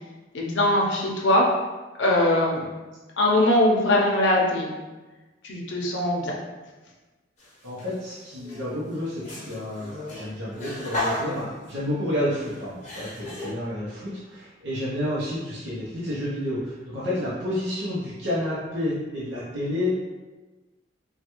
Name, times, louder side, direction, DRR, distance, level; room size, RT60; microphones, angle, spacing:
voice 1, 0.3-1.4 2.0-2.7 3.2-4.7 5.4-6.3, left 1 dB, 80° left, -2 dB, 0.6 m, -21 dB
sound 1, 7.4-8.0 8.4-13.5, left 1 dB, 40° left, 0.8 m, -35 dB
voice 2, 7.6-20.1, left 1 dB, 70° right, -9 dB, 0.7 m, -30 dB
3.2 x 2.3 x 2.9 m, 1.2 s
head